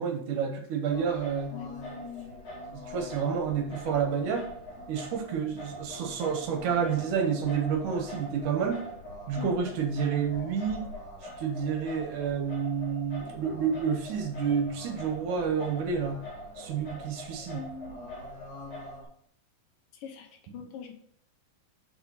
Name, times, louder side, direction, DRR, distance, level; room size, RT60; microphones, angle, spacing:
voice 1, 0.0-1.5 2.7-4.5 4.9-8.8 9.3-10.9 11.4-16.2 16.6-17.6, right 6 dB, 75° right, 4 dB, 2.3 m, -29 dB
Singing, 0.9-19.0, left 1 dB, 50° left, 2.7 m, -43 dB
voice 2, 1.5-2.4 9.4-9.5 17.5-17.9 19.9-20.9, left 6 dB, 80° left, 4 dB, 2.7 m, -42 dB
5.8 x 5.0 x 5.5 m, 0.65 s
omnidirectional pair, 3.9 m